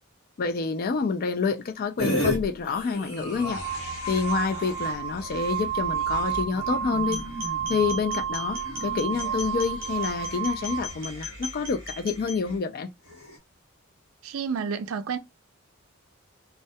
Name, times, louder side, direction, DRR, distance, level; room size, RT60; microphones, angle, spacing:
voice 1, 0.4-3.6 4.1-7.2 7.7-12.9, left 5 dB, 45° left, 0.3 m, -28 dB
sound 1, 2.0-2.4 2.6-12.6 13.0-13.4, left 1 dB, 85° left, 0.9 m, -36 dB
sound 2, 2.4-2.5 3.2-10.9, right 8 dB, ahead, 0.6 m, -31 dB
sound 3, 7.0-12.4, left 2 dB, 45° right, 0.8 m, -39 dB
voice 2, 14.2-15.2, right 6 dB, 70° right, 0.4 m, -30 dB
2.2 x 2.1 x 2.7 m
head